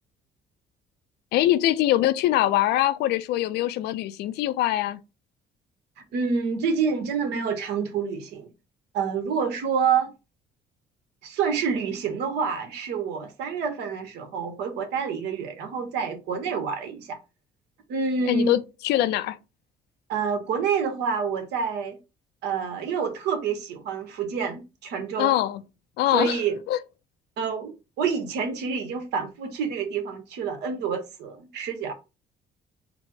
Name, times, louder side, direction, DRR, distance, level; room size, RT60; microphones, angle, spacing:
voice 1, 1.3-5.0 18.3-19.4 25.2-25.6 26.0-26.4 26.7-26.8, left 14 dB, 75° left, 0.4 m, -23 dB
voice 2, 6.1-8.5 8.9-10.1 11.2-17.2 17.9-18.6 20.1-22.0 22.4-25.3 26.1-26.6 27.4-31.9, right 6 dB, 80° right, 1.0 m, -28 dB
4.0 x 2.1 x 4.5 m
cardioid pair, 110°, 17 cm